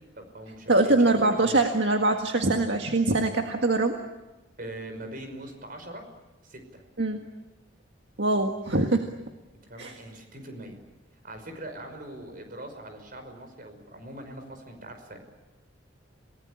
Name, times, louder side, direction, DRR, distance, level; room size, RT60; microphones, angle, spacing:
voice 1, 0.2-1.6 4.6-6.1 6.4-6.8 9.7-10.8 11.2-15.2, right 1 dB, 50° right, 6 dB, 5.7 m, -41 dB
voice 2, 0.7-4.0 7.0-7.3 8.2-9.1 9.8-9.9, right 2 dB, 70° right, 3 dB, 1.8 m, -23 dB
28.0 x 19.0 x 9.9 m, 1.1 s
head